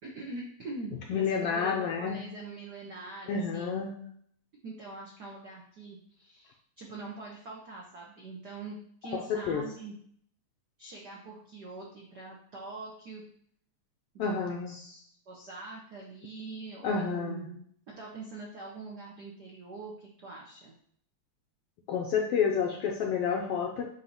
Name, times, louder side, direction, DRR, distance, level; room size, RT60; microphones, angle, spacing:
voice 1, 0.0-3.8 4.6-9.9 10.8-13.2 14.1-20.7, right 3 dB, 80° right, -2 dB, 0.9 m, -44 dB
voice 2, 1.1-2.2 3.3-3.9 9.3-9.6 14.2-14.7 16.8-17.5 21.9-23.9, left 6 dB, 75° left, 1 dB, 1.4 m, -29 dB
7.4 x 2.8 x 5.4 m, 0.63 s
omnidirectional pair, 3.3 m